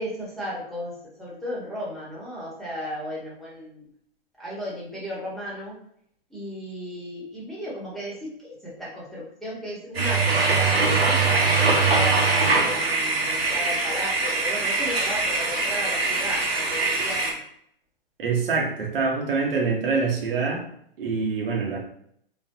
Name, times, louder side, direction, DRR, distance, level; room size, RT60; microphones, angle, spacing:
voice 1, 0.0-3.8 4.4-5.7 6.3-17.4, left 1 dB, ahead, -7 dB, 1.4 m, -35 dB
sound 1, 9.9-17.3, right 3 dB, 85° right, 1.3 m, -22 dB
voice 2, 18.2-20.6 21.0-21.8, right 4 dB, 65° right, -1 dB, 1.3 m, -25 dB
4.0 x 3.2 x 2.9 m, 0.68 s
hypercardioid pair, 120°, 30 cm